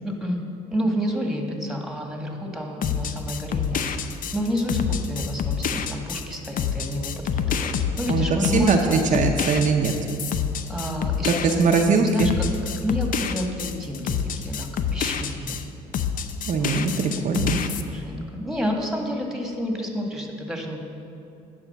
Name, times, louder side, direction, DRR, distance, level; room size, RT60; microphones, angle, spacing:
voice 1, 0.0-0.4 0.7-3.8 4.3-9.3 10.7-11.8 12.1-12.5 12.8-14.2 14.4-15.6 16.6-16.9 17.6-20.8, equal, ahead, 2 dB, 1.7 m, -29 dB
sound 1, 2.8-15.6 15.9-17.8, left 7 dB, 55° left, 0.6 m, -27 dB
voice 2, 8.1-9.9 11.3-12.3 16.5-17.6, right 4 dB, 50° right, 2 dB, 0.7 m, -21 dB
9.9 x 4.9 x 6.9 m, 2.6 s
supercardioid pair, 75°, 17 cm